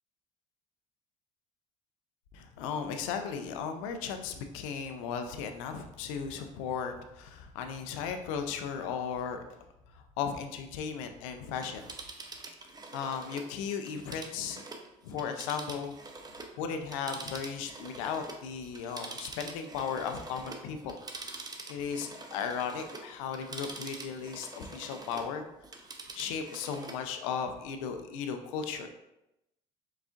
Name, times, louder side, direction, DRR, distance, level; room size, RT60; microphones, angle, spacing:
voice 1, 2.3-9.4 9.9-11.8 12.9-14.6 15.0-15.9 16.6-21.0 21.3-21.4 21.7-25.5 26.1-28.9, left 6 dB, 85° left, 6 dB, 0.5 m, -36 dB
Telephone, 11.5-16.6 16.9-25.3 25.6-27.0 27.4-27.5, right 3 dB, 25° right, 0.7 m, -45 dB
4.8 x 4.0 x 2.5 m, 0.89 s
supercardioid pair, 70°, 16 cm